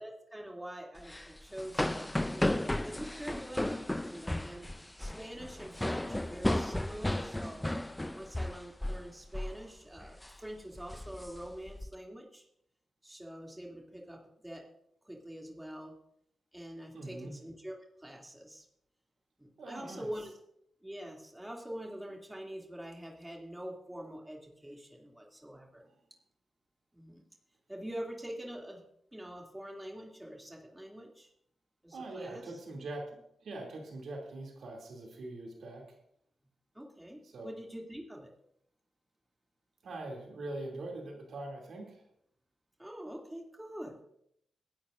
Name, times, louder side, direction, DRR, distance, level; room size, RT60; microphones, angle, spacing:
voice 1, 0.0-4.7 5.0-7.7 8.1-12.4 13.0-14.7 15.0-15.9 16.5-18.6 19.4-20.3 20.8-25.9 26.9-27.2 27.7-28.8 29.1-31.3 31.8-32.6 36.7-38.3 42.8-44.0, equal, 10° right, -1 dB, 2.8 m, -45 dB
sound 1, 1.0-9.1 9.3-9.6 10.0-10.3 10.8-11.9, left 1 dB, 10° left, 0.5 m, -34 dB
voice 2, 16.9-17.4 19.6-20.1 31.9-35.9 37.2-37.5 39.8-42.0, right 2 dB, 70° right, 1 dB, 2.9 m, -42 dB
21.5 x 11.5 x 2.6 m, 0.73 s
cardioid pair, 65°, 0 cm